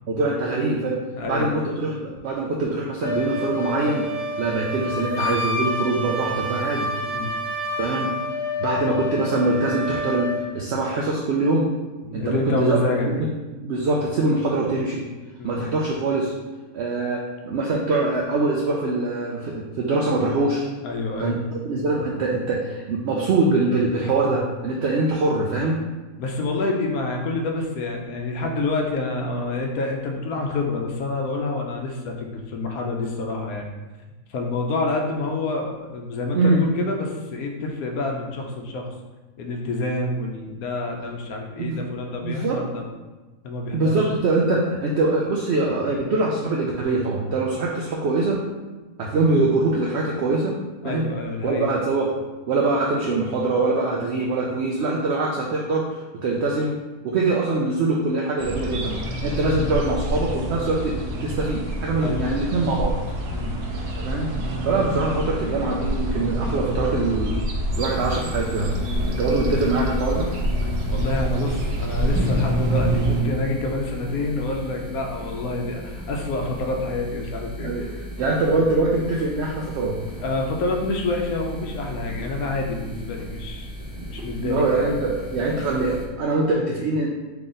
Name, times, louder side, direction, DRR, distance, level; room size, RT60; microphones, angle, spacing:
voice 1, 0.1-1.0 1.3-4.1 4.4-6.9 7.8-8.2 8.6-11.7 12.1-12.8 13.1-13.3 13.6-15.0 15.4-16.3 16.7-20.7 21.2-21.4 21.6-25.8 36.3-36.7 41.6-41.8 42.2-42.6 43.7-48.4 49.0-50.6 50.8-51.1 51.4-56.8 57.0-62.9 64.0-64.3 64.6-67.3 67.8-68.7 69.2-70.3 77.6-77.9 78.2-80.0 84.0-84.1 84.4-87.1, right 2 dB, 70° right, -2 dB, 0.6 m, -23 dB
voice 2, 1.1-1.5 7.1-7.3 12.0-13.3 15.4-15.7 20.8-21.4 26.2-33.7 34.3-38.9 39.4-42.9 43.4-44.1 50.8-51.7 62.0-62.3 63.3-63.6 63.9-64.1 70.9-78.0 80.2-84.9, left 2 dB, 75° left, 1 dB, 1.1 m, -27 dB
Wind instrument woodwind instrument, 3.0-10.4, left 1 dB, 40° left, 1.1 m, -28 dB
sound 1, 58.4-73.2, right 1 dB, 85° right, 1.3 m, -27 dB
sound 2, 67.7-86.1, equal, 25° right, 0.3 m, -35 dB
3.9 x 3.4 x 3.7 m, 1.2 s
omnidirectional pair, 1.6 m